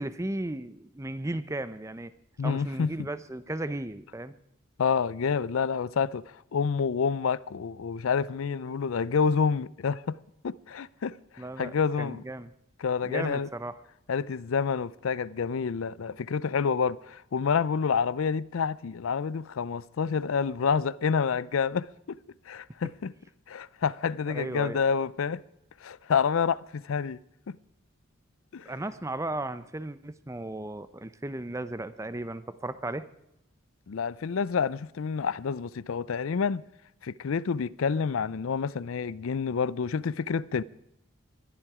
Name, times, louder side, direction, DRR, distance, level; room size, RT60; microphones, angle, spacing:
voice 1, 0.0-2.1 2.4-4.3 11.4-12.5 13.0-13.8 24.3-24.8 28.6-33.1, right 1 dB, 15° right, 0.6 m, -35 dB
voice 2, 2.4-2.9 4.8-10.2 10.4-12.2 12.8-13.5 14.1-22.2 22.5-23.1 23.5-25.4 25.8-27.2 27.5-27.6 28.5-28.7 33.9-36.6 37.0-40.6, left 6 dB, 70° left, 0.4 m, -28 dB
20.5 x 12.0 x 4.9 m
head